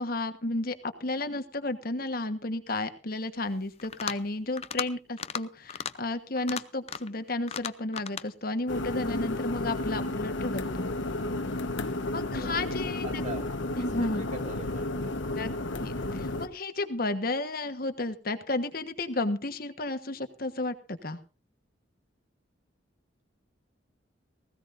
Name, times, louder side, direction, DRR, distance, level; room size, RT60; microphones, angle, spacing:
voice 1, 0.0-10.9 12.1-13.2 13.8-14.3 15.3-15.5 15.8-21.2, left 2 dB, 50° left, 9 dB, 1.4 m, -32 dB
sound 1, 3.8-4.3 4.6-4.9 5.2-5.4 5.7-5.9 6.4-7.1 7.5-8.3, left 7 dB, 35° left, 0.6 m, -35 dB
sound 2, 8.7-16.5, left 2 dB, 90° left, 1.3 m, -32 dB
voice 2, 12.3-15.1, right 2 dB, 40° right, 1 dB, 4.4 m, -43 dB
19.5 x 16.0 x 2.6 m, 0.32 s
head